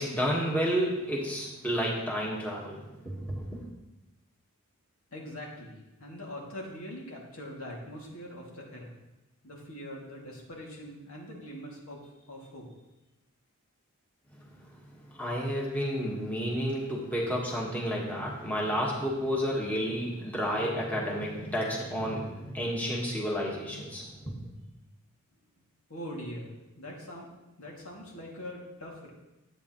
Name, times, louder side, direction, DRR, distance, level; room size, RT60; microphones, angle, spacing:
voice 1, 0.0-3.6 15.1-24.5, equal, 10° left, -4 dB, 1.4 m, -31 dB
voice 2, 5.1-8.9 9.4-12.7 25.9-27.3 27.6-29.1, equal, 80° left, -3 dB, 2.3 m, -42 dB
10.5 x 8.6 x 3.0 m, 1.0 s
head